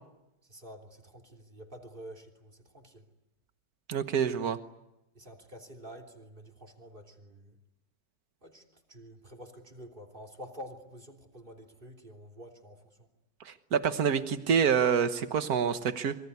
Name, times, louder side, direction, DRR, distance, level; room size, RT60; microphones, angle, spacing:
voice 1, 0.4-3.0 5.1-7.6 8.4-13.1, equal, 35° right, 3 dB, 3.5 m, -49 dB
voice 2, 3.9-4.6 13.5-16.2, right 7 dB, 90° right, 10 dB, 1.7 m, -27 dB
26.5 x 23.0 x 9.7 m, 0.89 s
omnidirectional pair, 1.6 m